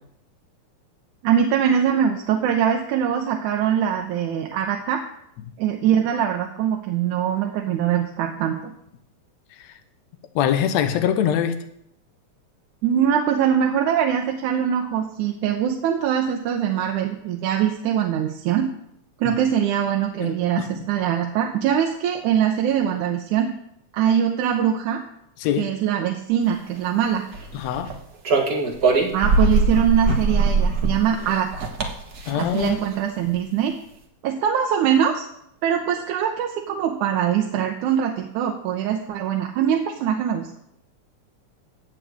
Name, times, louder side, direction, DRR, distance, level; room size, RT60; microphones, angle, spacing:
voice 1, 1.2-5.0 5.6-8.6 12.8-18.7 19.2-23.5 23.9-25.0 25.6-27.3 29.1-31.7 32.3-33.7 34.2-35.3 35.6-40.6, right 9 dB, 80° right, 3 dB, 2.2 m, -22 dB
voice 2, 10.4-11.6 20.2-20.8 25.4-25.7 27.5-27.9 32.3-32.8, left 9 dB, 70° left, 9 dB, 2.0 m, -23 dB
sound 1, 27.3-28.0 28.3-32.9, right 3 dB, 50° right, 1.2 m, -22 dB
16.0 x 8.4 x 3.5 m, 0.75 s
omnidirectional pair, 3.5 m